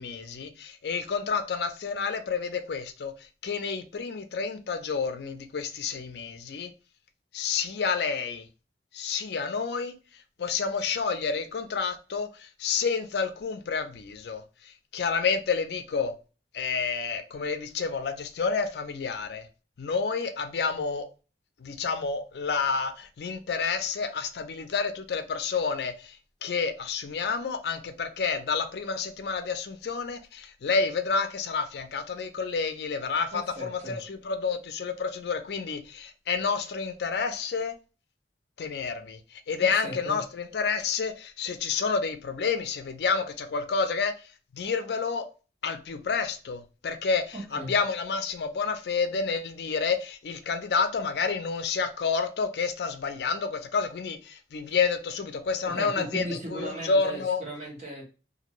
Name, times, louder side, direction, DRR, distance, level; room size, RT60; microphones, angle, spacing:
voice 1, 0.0-6.7 7.3-8.5 8.9-9.9 10.4-16.1 16.5-19.5 19.8-21.1 21.6-37.7 38.6-44.3 44.5-45.3 45.6-57.4, left 5 dB, 70° left, 0.4 m, -29 dB
voice 2, 33.3-34.0 39.6-40.2 47.3-47.7 55.6-58.0, right 1 dB, 40° right, 1.1 m, -37 dB
2.6 x 2.5 x 3.0 m
head